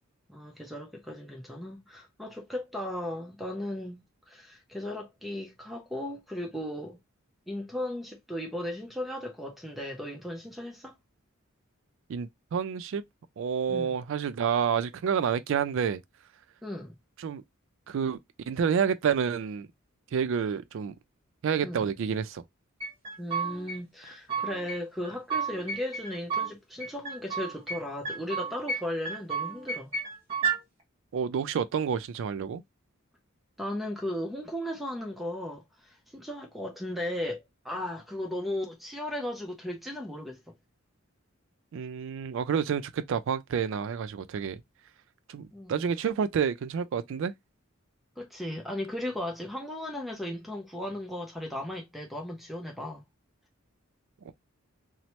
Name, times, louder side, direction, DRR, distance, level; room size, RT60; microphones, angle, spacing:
voice 1, 0.3-7.0 7.5-10.9 13.7-13.9 16.6-16.9 21.6-21.9 23.2-29.9 33.6-40.4 45.5-45.9 48.2-53.0, left 1 dB, ahead, 0.5 m, -36 dB
voice 2, 12.1-13.0 13.4-16.0 17.2-17.4 17.9-18.2 18.5-19.7 20.1-20.9 21.4-22.4 31.1-32.6 41.7-44.6 45.3-47.3 54.3-54.4, right 7 dB, 65° right, 0.3 m, -29 dB
sound 1, 22.8-23.8 24.1-24.8 25.0-26.5 26.8-27.8 28.1-28.8 29.1-30.6, right 5 dB, 30° right, 1.3 m, -32 dB
3.0 x 2.0 x 2.8 m
head